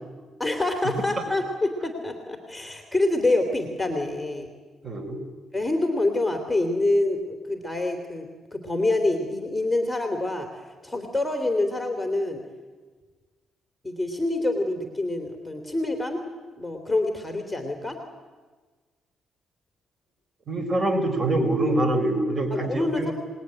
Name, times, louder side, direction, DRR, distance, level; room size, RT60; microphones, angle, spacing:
voice 1, 0.4-4.5 5.5-12.4 13.8-16.2 16.6-18.0 22.5-23.1, left 2 dB, 5° left, 4 dB, 3.2 m, -26 dB
voice 2, 4.8-5.2 20.5-23.1, right 1 dB, 30° right, 7 dB, 5.3 m, -24 dB
26.0 x 20.5 x 9.9 m, 1.4 s
cardioid pair, 90°, 0 cm